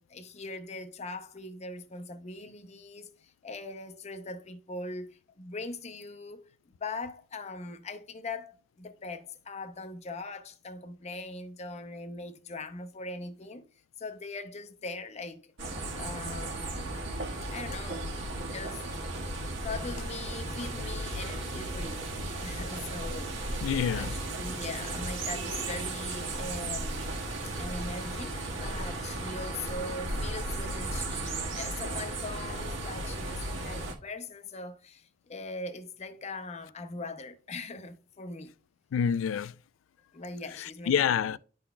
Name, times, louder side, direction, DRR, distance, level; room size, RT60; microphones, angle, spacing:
voice 1, 0.0-6.4 6.8-13.6 14.0-15.5 16.0-17.1 17.5-18.8 19.6-22.1 22.4-23.6 23.9-27.2 27.4-38.5 40.1-41.1, left 3 dB, 35° left, 0.6 m, -41 dB
sound 1, 15.6-33.9, right 2 dB, 70° right, 1.6 m, -35 dB
voice 2, 23.6-24.2 38.9-39.5 40.6-41.4, left 8 dB, 80° left, 0.3 m, -27 dB
11.5 x 3.9 x 2.2 m
head